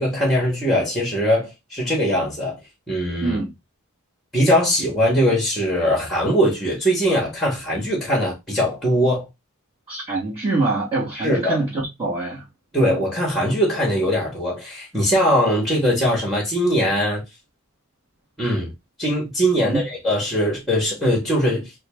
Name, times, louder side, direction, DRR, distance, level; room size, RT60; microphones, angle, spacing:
voice 1, 0.0-2.6 2.9-3.4 4.3-9.3 11.2-11.6 12.7-17.2 18.4-18.7 19.0-21.7, equal, ahead, 1.3 m, -21 dB
voice 2, 3.2-3.5 9.9-12.4 19.6-19.8, right 3 dB, 25° right, 1.4 m, -24 dB
3.7 x 2.3 x 3.4 m
head